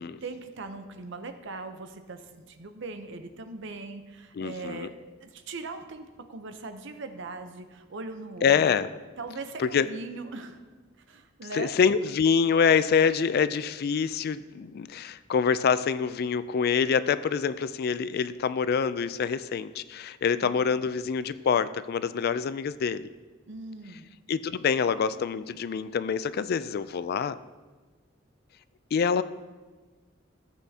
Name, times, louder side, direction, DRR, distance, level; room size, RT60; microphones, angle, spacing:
voice 1, 0.2-8.7 9.2-10.6 11.1-11.7 20.4-20.6 23.5-24.1, right 3 dB, 65° right, 8 dB, 0.7 m, -40 dB
voice 2, 4.3-4.9 8.4-8.9 9.6-9.9 11.5-23.1 24.3-27.4 28.9-29.2, left 6 dB, 50° left, 15 dB, 0.3 m, -26 dB
14.0 x 8.2 x 2.8 m, 1.3 s
head